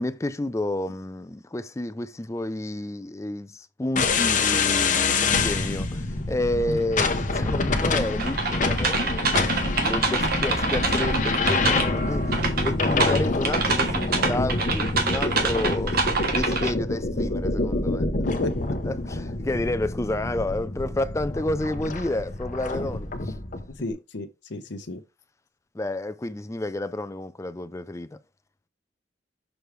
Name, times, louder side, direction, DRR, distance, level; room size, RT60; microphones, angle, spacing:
voice 1, 0.0-16.0 16.3-18.1 18.9-23.3 25.7-28.2, left 1 dB, 15° left, 0.4 m, -30 dB
sound 1, 4.0-23.7, left 3 dB, 45° left, 0.8 m, -26 dB
sound 2, 8.2-12.0 12.3-16.7, right 4 dB, 55° right, 1.3 m, -26 dB
voice 2, 18.2-18.8 23.8-25.0, left 2 dB, 70° left, 0.8 m, -32 dB
6.2 x 4.9 x 3.3 m
head